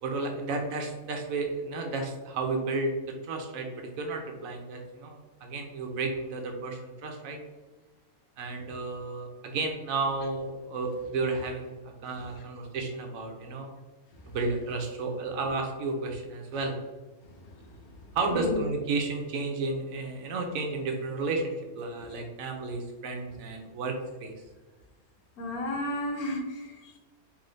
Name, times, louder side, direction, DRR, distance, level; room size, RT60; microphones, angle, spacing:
voice 1, 0.0-2.9 3.2-7.4 8.4-11.7 12.0-13.7 14.3-16.7 18.1-23.9 24.2-24.3, right 3 dB, 70° right, 3 dB, 1.1 m, -32 dB
voice 2, 17.3-17.7 18.3-18.6 21.9-22.1 25.4-27.0, left 1 dB, 80° left, 2 dB, 1.3 m, -34 dB
3.5 x 3.1 x 3.8 m, 1.2 s
omnidirectional pair, 1.5 m